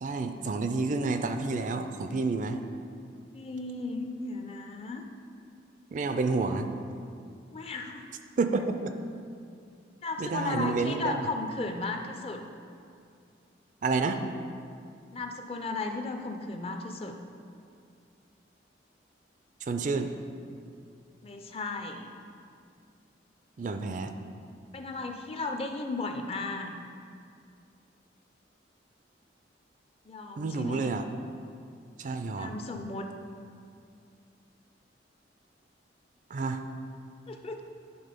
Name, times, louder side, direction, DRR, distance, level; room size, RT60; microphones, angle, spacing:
voice 1, 0.0-2.6 5.9-6.7 8.4-8.9 10.2-11.3 13.8-14.2 19.6-20.1 23.6-24.1 30.4-31.1 32.0-32.6 36.3-36.6, right 3 dB, 45° right, 7 dB, 0.4 m, -29 dB
voice 2, 3.3-5.0 7.5-8.0 10.0-12.4 15.1-17.2 21.2-22.1 24.7-26.7 30.1-31.0 32.3-33.1 37.3-37.6, left 3 dB, 30° left, 5 dB, 0.4 m, -35 dB
9.5 x 3.6 x 5.1 m, 2.4 s
head